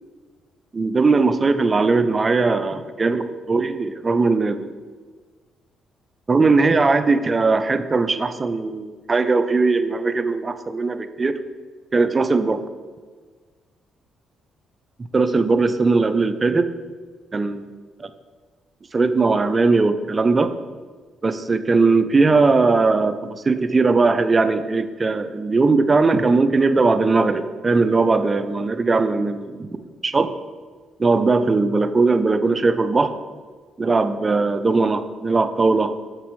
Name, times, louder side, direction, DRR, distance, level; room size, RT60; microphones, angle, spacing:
voice 1, 0.7-4.7 6.3-11.4 11.9-12.6 15.1-16.7 17.3-17.7 18.0-18.1 18.9-20.5 21.2-29.8 30.0-30.3 31.0-33.1 33.8-35.9, right 3 dB, 30° right, 11 dB, 0.4 m, -19 dB
7.4 x 6.8 x 3.1 m, 1.5 s
cardioid pair, 90°, 0 cm